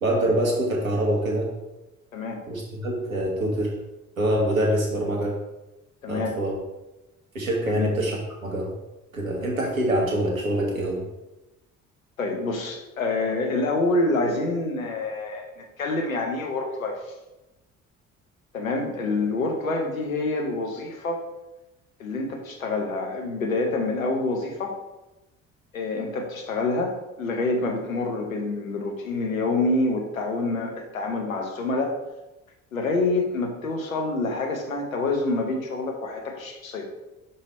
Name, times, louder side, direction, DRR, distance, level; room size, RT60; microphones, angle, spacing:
voice 1, 0.0-1.5 2.5-3.7 4.2-5.3 6.1-6.5 7.3-8.7 9.1-11.0, right 1 dB, 85° right, -1 dB, 1.1 m, -25 dB
voice 2, 6.0-6.3 7.7-7.9 12.2-17.1 18.5-21.2 22.0-24.8 25.7-32.0 32.7-36.8, left 2 dB, 85° left, 2 dB, 0.9 m, -27 dB
5.6 x 3.9 x 4.2 m, 0.99 s
figure-of-eight pair, 50°, 40 cm